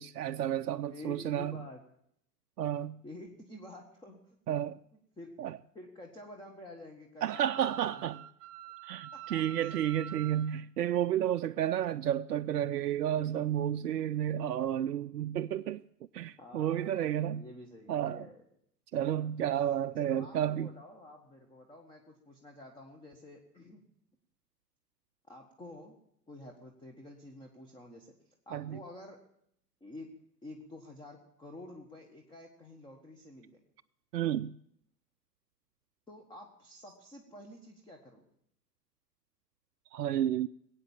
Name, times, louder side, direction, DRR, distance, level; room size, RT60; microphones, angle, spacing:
voice 1, 0.0-1.6 2.6-3.0 4.5-4.8 5.4-5.6 7.2-8.2 8.8-15.8 16.1-17.4 17.9-18.3 18.9-20.7 28.5-28.8 34.1-34.6 39.9-40.5, right 11 dB, 70° right, 0.5 m, -31 dB
voice 2, 0.9-1.8 3.0-4.4 5.2-5.3 5.7-8.2 8.6-8.7 9.1-9.8 16.4-18.4 19.1-19.2 20.0-23.8 25.3-25.9 26.3-29.2 29.8-30.1 30.4-33.6 36.1-38.3, left 1 dB, 10° left, 1.5 m, -50 dB
Wind instrument woodwind instrument, 7.3-10.5, right 9 dB, 30° right, 1.2 m, -46 dB
21.0 x 8.6 x 7.5 m
figure-of-eight pair, 100°, 48 cm